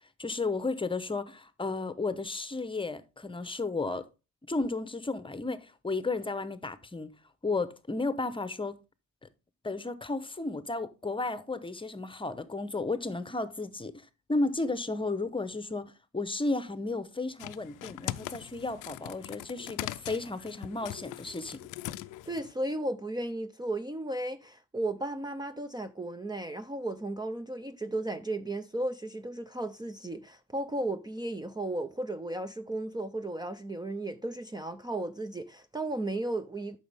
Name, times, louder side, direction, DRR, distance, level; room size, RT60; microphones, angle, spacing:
voice 1, 0.2-4.1 4.5-7.1 7.4-8.8 9.6-21.6, left 3 dB, 15° left, 0.9 m, -33 dB
sound 1, 17.4-22.5, left 15 dB, 90° left, 0.5 m, -41 dB
voice 2, 22.3-36.8, right 1 dB, 15° right, 0.6 m, -35 dB
9.3 x 6.3 x 3.5 m
cardioid pair, 90°, 30 cm